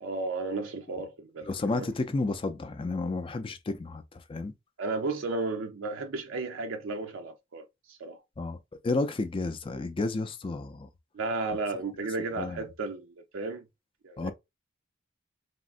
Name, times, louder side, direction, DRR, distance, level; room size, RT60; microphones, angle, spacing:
voice 1, 0.0-1.9 4.8-8.2 11.1-13.7 14.0-14.3, right 3 dB, 75° right, 0.5 m, -34 dB
voice 2, 1.5-4.5 8.4-8.6 8.8-10.9 12.0-12.1 12.4-12.6 14.2-14.3, left 3 dB, 25° left, 0.4 m, -31 dB
3.5 x 2.1 x 2.4 m
head